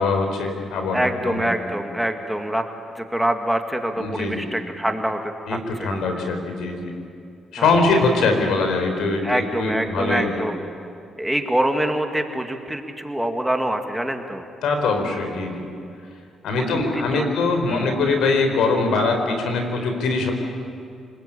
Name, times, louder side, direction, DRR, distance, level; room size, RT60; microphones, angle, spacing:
voice 1, 0.0-1.5 4.0-4.4 5.5-6.9 7.5-10.3 14.6-15.6 16.4-20.3, left 3 dB, 80° left, 5 dB, 4.6 m, -22 dB
voice 2, 0.9-2.6 2.9-5.9 7.5-7.9 9.2-10.6 11.2-14.4 16.5-17.3 17.7-18.0, right 1 dB, 5° right, 4 dB, 2.0 m, -25 dB
28.0 x 20.0 x 8.8 m, 2.5 s
cardioid pair, 90°, 0 cm